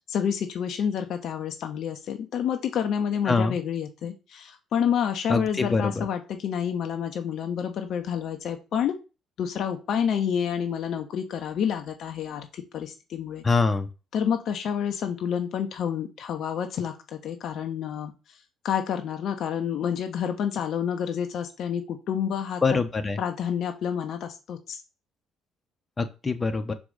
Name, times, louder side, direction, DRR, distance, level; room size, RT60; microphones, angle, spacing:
voice 1, 0.1-9.0 9.4-13.4 14.1-18.1 18.6-22.8 23.2-24.8, left 8 dB, 55° left, 5 dB, 0.8 m, -29 dB
voice 2, 5.3-6.1 13.4-13.9 22.6-23.2 26.0-26.7, left 4 dB, 25° left, 7 dB, 1.0 m, -24 dB
6.0 x 4.9 x 4.0 m, 0.30 s
figure-of-eight pair, 50°, 0 cm